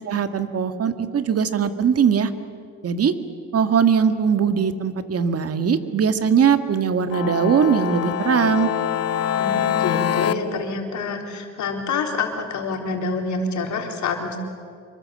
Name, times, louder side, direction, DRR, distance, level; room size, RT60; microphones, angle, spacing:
voice 1, 0.0-2.3 2.8-3.1 3.5-8.7, right 7 dB, 50° right, 9 dB, 1.8 m, -20 dB
sound 1, 7.1-10.3, left 10 dB, 55° left, 1.1 m, -24 dB
voice 2, 9.4-14.4, left 4 dB, 70° left, 2 dB, 4.0 m, -27 dB
26.5 x 23.5 x 7.7 m, 2.4 s
cardioid pair, 90°, 30 cm